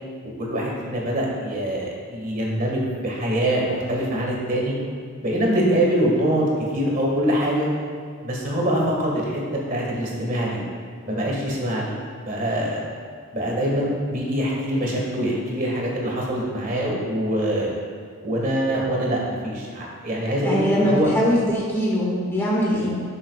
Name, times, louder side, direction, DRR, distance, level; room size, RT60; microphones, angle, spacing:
voice 1, 0.4-4.7 5.2-7.7 8.2-9.4 9.7-10.6 11.1-11.9 12.2-12.9 13.3-17.7 18.2-21.1, right 1 dB, 40° right, -3 dB, 1.8 m, -24 dB
voice 2, 20.4-22.9, equal, 10° left, -6 dB, 1.8 m, -22 dB
12.0 x 7.4 x 2.4 m, 2.2 s
head